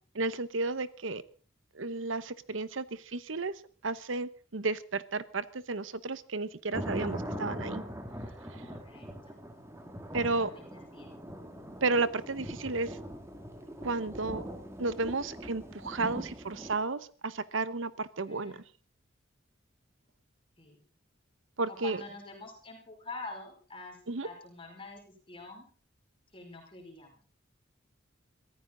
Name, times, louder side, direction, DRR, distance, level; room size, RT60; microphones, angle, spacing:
voice 1, 0.1-1.2 1.7-2.8 3.1-3.5 3.8-7.8 10.1-10.5 11.8-13.0 13.8-14.4 14.8-18.5 21.6-22.0 24.1-24.3, right 3 dB, 80° right, 16 dB, 1.0 m, -32 dB
sound 1, 6.7-16.7, equal, 15° right, 2.4 m, -41 dB
voice 2, 8.5-9.4 10.3-11.2 18.3-18.6 20.6-20.8 21.7-25.7 26.3-27.2, left 3 dB, 30° left, 1 dB, 4.9 m, -47 dB
23.0 x 14.5 x 3.9 m, 0.38 s
head